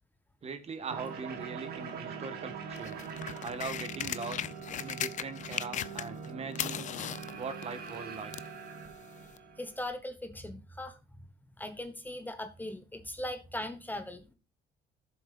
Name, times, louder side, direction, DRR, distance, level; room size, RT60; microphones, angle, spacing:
voice 1, 0.4-3.0 3.4-4.4 4.8-6.9 7.4-8.3, right 4 dB, 40° right, 1.4 m, -40 dB
sound 1, 0.9-9.8, right 6 dB, 65° right, 2.2 m, -43 dB
sound 2, 2.7-6.3 6.5-8.6 9.4-9.5, left 10 dB, 45° left, 0.6 m, -37 dB
voice 2, 9.6-10.9 11.6-14.3, left 1 dB, 10° left, 1.1 m, -39 dB
13.5 x 7.6 x 2.5 m
cardioid pair, 110°, 17 cm